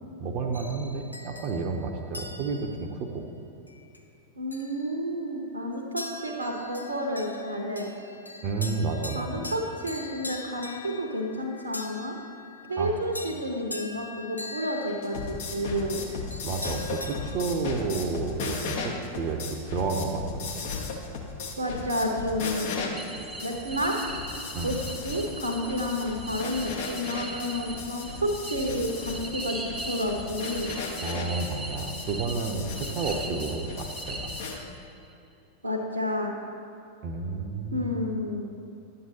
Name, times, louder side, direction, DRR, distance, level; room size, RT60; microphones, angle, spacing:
voice 1, 0.2-3.3 8.4-9.5 12.8-12.9 16.4-19.4 19.7-20.7 24.5-24.8 31.0-34.3 37.0-38.0, right 4 dB, 40° right, 3 dB, 0.6 m, -31 dB
sound 1, 0.5-2.9 3.7-4.0 4.5-5.3 6.0-17.4, left 2 dB, 85° left, 0.5 m, -42 dB
voice 2, 4.4-7.9 9.1-12.2 12.7-16.0 21.6-23.0 23.4-24.0 24.6-24.8 25.0-30.7 35.6-36.3 37.7-38.4, equal, 80° right, 1 dB, 0.8 m, -30 dB
sound 2, 14.9-34.6, left 4 dB, 55° left, 1.0 m, -36 dB
sound 3, 23.0-34.9, right 2 dB, 10° right, 0.7 m, -40 dB
11.0 x 7.7 x 2.8 m, 2.7 s
figure-of-eight pair, 90°, 0 cm